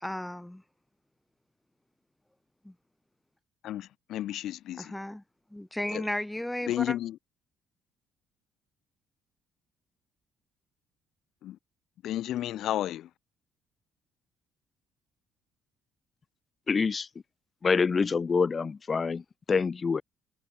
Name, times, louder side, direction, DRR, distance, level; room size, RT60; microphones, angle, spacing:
voice 1, 0.0-0.6 2.6-2.7 4.8-5.2 5.5-6.9, left 1 dB, 5° left, 1.1 m, -34 dB
voice 2, 3.6-5.0 5.9-6.1 6.7-7.2 11.4-11.6 12.0-13.1, left 12 dB, 60° left, 1.3 m, -32 dB
voice 3, 16.7-17.1 17.6-20.0, left 5 dB, 25° left, 2.8 m, -26 dB
cardioid pair, 165°, 0 cm